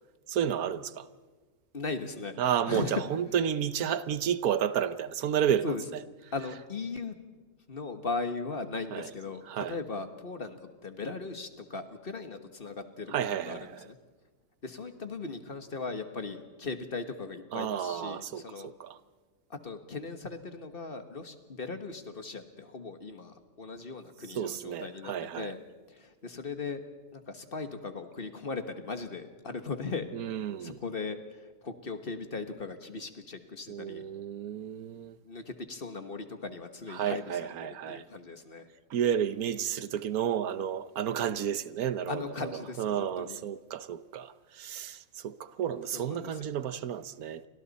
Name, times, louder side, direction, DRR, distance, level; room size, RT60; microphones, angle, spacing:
voice 1, 0.3-1.1 2.4-6.0 8.9-9.1 9.4-9.8 13.1-13.9 17.5-19.0 24.3-25.5 30.1-30.8 33.7-35.2 36.9-38.0 38.9-47.5, right 9 dB, 85° right, 1.3 m, -32 dB
voice 2, 1.7-2.3 2.7-3.0 5.6-5.8 6.3-7.2 7.7-13.6 13.8-14.0 14.6-18.7 19.5-25.6 26.0-26.8 27.1-30.0 30.6-31.2 31.6-34.0 35.3-37.2 37.9-38.6 42.1-43.4 45.9-46.3, left 4 dB, 40° left, 1.5 m, -38 dB
29.5 x 25.0 x 4.2 m
omnidirectional pair, 1.5 m